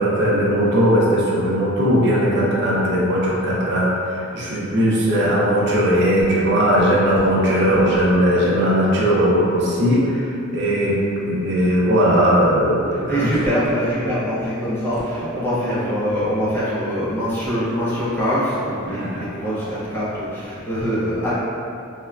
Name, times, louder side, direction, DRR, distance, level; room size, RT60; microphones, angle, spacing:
voice 1, 0.0-10.3 10.5-13.3 18.9-19.2, equal, 55° right, -5 dB, 0.6 m, -18 dB
voice 2, 12.9-21.3, equal, 10° left, -11 dB, 0.5 m, -23 dB
3.4 x 2.1 x 2.3 m, 2.5 s
head